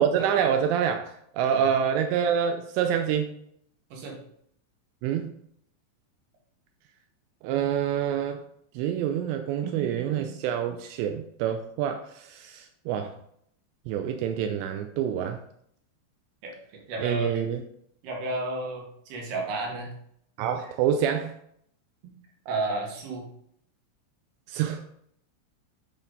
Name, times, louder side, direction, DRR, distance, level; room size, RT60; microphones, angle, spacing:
voice 1, 0.0-3.3 5.0-5.3 7.4-8.4 8.7-13.2 13.9-15.4 17.0-17.6 20.4-21.3 24.5-24.8, right 8 dB, 85° right, 6 dB, 2.5 m, -27 dB
voice 2, 9.6-10.3 16.4-17.4 18.0-20.0 22.0-22.1 22.5-23.3, right 2 dB, 65° right, 0 dB, 3.0 m, -33 dB
9.9 x 4.2 x 3.9 m, 0.69 s
omnidirectional pair, 5.7 m